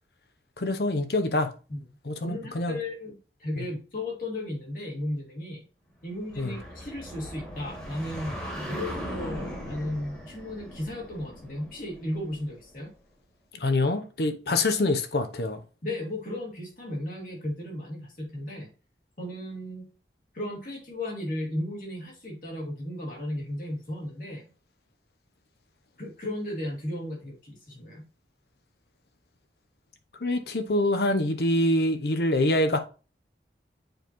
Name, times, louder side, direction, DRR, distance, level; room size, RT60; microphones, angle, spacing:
voice 1, 0.6-1.5 2.1-2.8 3.6-3.7 6.4-6.5 13.6-15.6 30.2-32.8, left 1 dB, 65° left, 0.8 m, -25 dB
voice 2, 2.2-5.6 6.0-12.9 15.8-18.7 19.2-19.8 20.3-24.5 26.0-28.0, left 1 dB, 50° left, 2.6 m, -35 dB
Whoosh Passby Jet Long Stereo, 6.1-12.7, equal, 5° left, 1.8 m, -39 dB
7.7 x 4.5 x 3.1 m
head